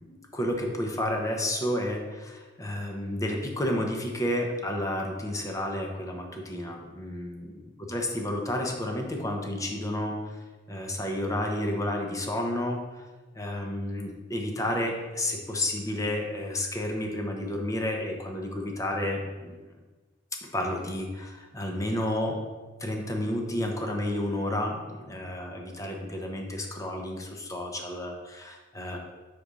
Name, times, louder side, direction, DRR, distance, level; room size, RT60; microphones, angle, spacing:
voice 1, 0.0-10.4 10.7-13.1 13.3-19.6 20.4-22.4 22.8-29.0, left 1 dB, 15° left, 1 dB, 0.8 m, -31 dB
5.3 x 4.2 x 4.9 m, 1.3 s
head